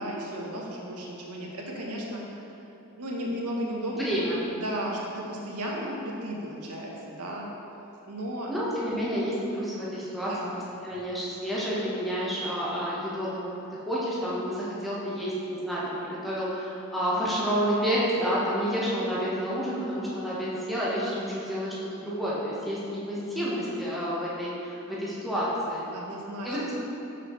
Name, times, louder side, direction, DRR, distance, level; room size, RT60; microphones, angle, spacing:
voice 1, 0.0-2.2 3.0-4.3 4.5-7.5 8.0-8.5 10.3-10.6 25.9-26.6, equal, 85° right, -2 dB, 1.0 m, -34 dB
voice 2, 3.9-4.4 8.5-10.3 10.8-25.9 26.4-26.7, equal, ahead, -8 dB, 1.0 m, -29 dB
5.9 x 5.7 x 3.1 m, 2.9 s
head